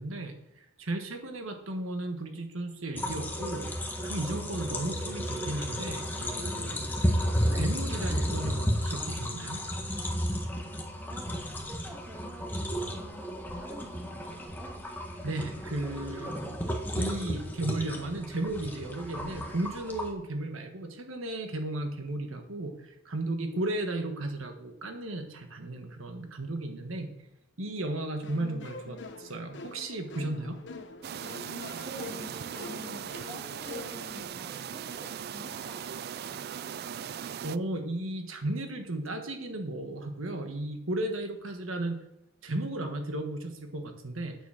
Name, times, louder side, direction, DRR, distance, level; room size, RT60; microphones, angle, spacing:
voice 1, 0.0-3.7 4.0-6.9 7.5-9.6 15.2-16.4 16.9-27.1 27.6-30.6 37.4-42.0 42.4-44.3, right 1 dB, 75° right, 5 dB, 1.4 m, -35 dB
sound 1, 2.9-20.1, equal, 10° left, 1.4 m, -33 dB
voice 2, 11.0-14.9 31.8-36.7, equal, 10° right, 1 dB, 1.8 m, -48 dB
sound 2, 28.2-34.2, left 3 dB, 55° left, 1.1 m, -44 dB
sound 3, 31.0-37.6, right 8 dB, 50° right, 0.3 m, -39 dB
9.4 x 7.1 x 6.4 m, 0.83 s
head